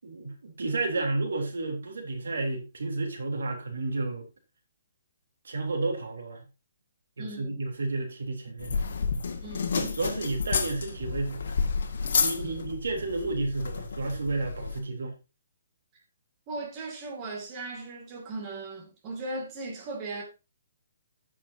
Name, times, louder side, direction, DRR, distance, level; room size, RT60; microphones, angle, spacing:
voice 1, 0.0-4.3 5.4-6.4 7.2-8.8 9.7-11.5 12.2-15.1, right 3 dB, 85° right, 3.4 m, -31 dB
voice 2, 7.2-7.6 9.4-9.8 12.3-12.6 16.5-20.2, right 2 dB, 20° right, 2.3 m, -38 dB
sound 1, 8.6-14.8, left 5 dB, 60° left, 1.8 m, -30 dB
14.0 x 6.2 x 2.8 m
hypercardioid pair, 170°, 0 cm